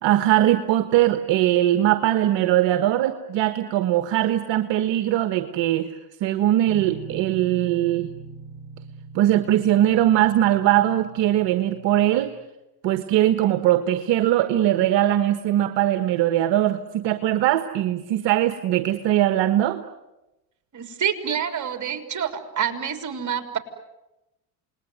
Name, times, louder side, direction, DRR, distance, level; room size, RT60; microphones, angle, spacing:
voice 1, 0.0-5.9 6.2-8.1 9.1-12.3 12.8-19.8, right 13 dB, 60° right, 9 dB, 1.5 m, -21 dB
sound 1, 6.7-12.3, right 5 dB, 5° right, 3.9 m, -41 dB
voice 2, 20.7-23.6, right 8 dB, 35° right, 6 dB, 4.1 m, -27 dB
28.5 x 20.5 x 9.5 m, 0.98 s
hypercardioid pair, 80°, 49 cm